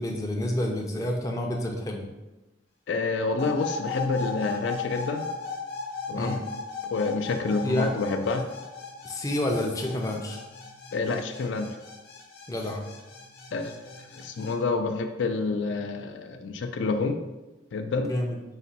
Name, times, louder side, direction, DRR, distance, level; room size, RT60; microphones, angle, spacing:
voice 1, 0.0-2.1 6.1-6.4 7.6-8.0 9.0-10.4 12.5-12.8 18.0-18.4, left 1 dB, 20° left, 0 dB, 0.4 m, -29 dB
voice 2, 2.9-5.3 6.1-6.4 6.9-8.4 10.9-11.7 13.5-13.8 14.1-17.2 17.7-18.1, left 3 dB, 75° left, 5 dB, 0.4 m, -28 dB
sound 1, 3.4-14.5, left 4 dB, 55° left, 0.8 m, -37 dB
4.9 x 2.2 x 4.1 m, 1.1 s
head